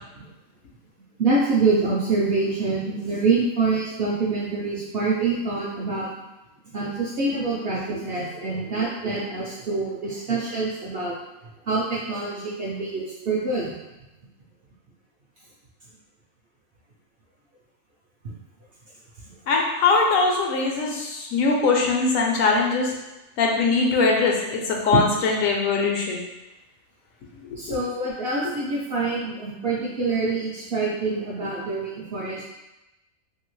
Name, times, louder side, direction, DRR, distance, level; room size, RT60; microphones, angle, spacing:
voice 1, 1.2-6.2 6.7-11.1 11.7-13.7 18.2-18.3 24.9-25.0 27.6-32.4, right 3 dB, 65° right, -5 dB, 0.6 m, -25 dB
voice 2, 19.5-22.9 23.4-26.2 27.5-27.8, left 4 dB, 75° left, 0 dB, 1.0 m, -21 dB
2.8 x 2.7 x 3.0 m, 0.98 s
omnidirectional pair, 1.4 m